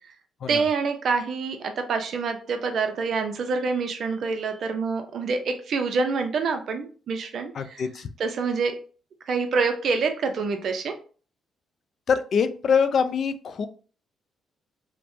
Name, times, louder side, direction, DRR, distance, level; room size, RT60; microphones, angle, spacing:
voice 1, 0.5-7.9 8.2-8.8 9.3-10.9, right 4 dB, 60° right, 6 dB, 0.5 m, -26 dB
voice 2, 7.6-8.1 12.1-13.7, left 6 dB, 55° left, 10 dB, 0.3 m, -24 dB
3.2 x 2.1 x 2.6 m, 0.39 s
cardioid pair, 90°, 0 cm